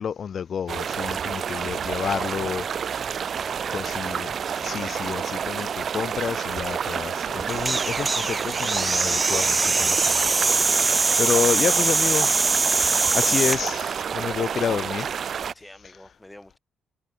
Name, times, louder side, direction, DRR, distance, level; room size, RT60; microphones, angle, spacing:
voice 1, 0.0-2.6 3.7-12.5 12.8-15.1, left 7 dB, 55° left, 2.9 m, -29 dB
sound 1, 0.7-15.5, right 7 dB, 55° right, 0.9 m, -29 dB
voice 2, 2.3-4.1 15.5-16.6, left 1 dB, 10° left, 7.1 m, -48 dB
sound 2, 7.5-13.6, right 3 dB, 35° right, 0.4 m, -22 dB
hypercardioid pair, 45°, 0 cm